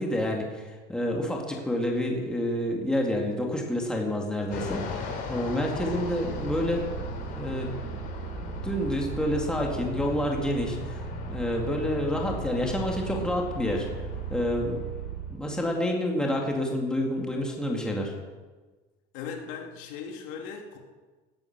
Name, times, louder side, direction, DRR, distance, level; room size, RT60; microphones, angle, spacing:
voice 1, 0.0-6.8 7.3-8.0 8.4-13.9 14.3-18.2, left 1 dB, 5° left, 0 dB, 2.1 m, -29 dB
Fixed-wing aircraft airplane, 4.5-15.4, left 5 dB, 50° left, 3.6 m, -38 dB
sound 1, 5.8-15.4, right 9 dB, 70° right, 1.9 m, -38 dB
voice 2, 19.1-20.8, left 6 dB, 75° left, 2 dB, 2.7 m, -38 dB
18.0 x 10.5 x 6.7 m, 1.3 s
cardioid pair, 175°, 20 cm